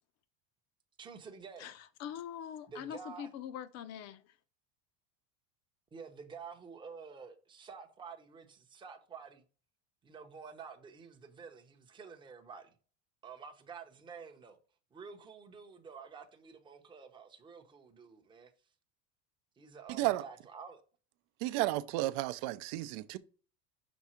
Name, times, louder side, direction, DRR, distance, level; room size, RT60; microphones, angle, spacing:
voice 1, 1.0-1.7 2.7-3.3 5.9-9.4 10.0-12.7 13.2-14.6 14.9-18.5 19.6-20.8, right 5 dB, 10° right, 0.7 m, -50 dB
voice 2, 1.6-4.3, left 9 dB, 40° left, 0.6 m, -43 dB
voice 3, 21.4-23.2, right 17 dB, 60° right, 0.6 m, -32 dB
6.2 x 3.6 x 4.3 m
supercardioid pair, 145°, 39 cm